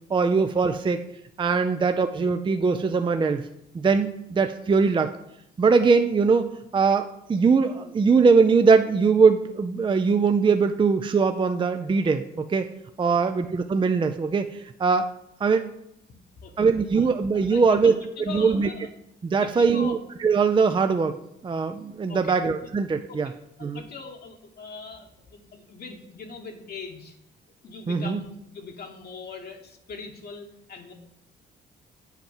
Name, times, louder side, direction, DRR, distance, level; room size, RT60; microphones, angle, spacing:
voice 1, 0.1-1.0 1.4-3.5 3.7-5.1 5.6-12.7 13.0-15.1 15.4-15.7 16.6-17.9 18.2-18.7 19.2-21.2 21.4-23.3 23.6-23.8 27.9-28.2, right 5 dB, 25° right, 8 dB, 0.5 m, -21 dB
voice 2, 16.1-16.7 16.9-17.1 17.3-18.9 19.3-20.0 22.1-22.4 23.1-23.3 23.6-27.1 27.6-30.9, left 4 dB, 50° left, 2 dB, 1.2 m, -41 dB
8.2 x 4.4 x 7.1 m, 0.78 s
cardioid pair, 90°, 20 cm